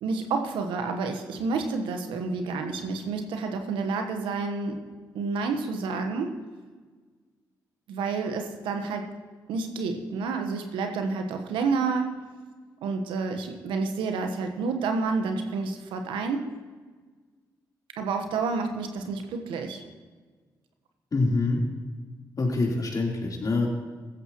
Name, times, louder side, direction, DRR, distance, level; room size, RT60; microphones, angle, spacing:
voice 1, 0.0-4.8 5.1-6.4 7.9-9.1 9.5-12.1 12.8-16.5 18.0-19.8, right 4 dB, 80° right, 5 dB, 1.2 m, -29 dB
voice 2, 21.1-21.6 22.4-23.7, left 3 dB, 50° left, -1 dB, 3.8 m, -25 dB
16.0 x 13.5 x 3.1 m, 1.4 s
hypercardioid pair, 40°, 8 cm